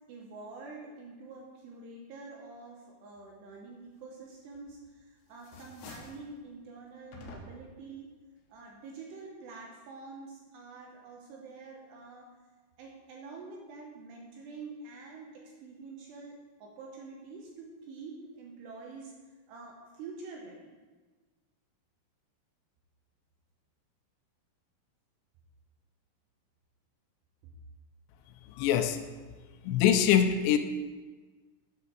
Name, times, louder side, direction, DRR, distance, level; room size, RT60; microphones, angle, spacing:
voice 1, 0.1-8.1 8.5-12.3 12.8-19.1 19.5-20.8 27.4-27.5, right 3 dB, 75° right, -1 dB, 2.7 m, -47 dB
sound 1, 4.5-5.0 5.3-6.3 7.1-7.8, left 3 dB, 70° left, 2.8 m, -48 dB
voice 2, 28.6-29.0 29.6-30.6, left 9 dB, 85° left, 7 dB, 2.6 m, -23 dB
8.1 x 5.6 x 6.3 m, 1.3 s
omnidirectional pair, 5.7 m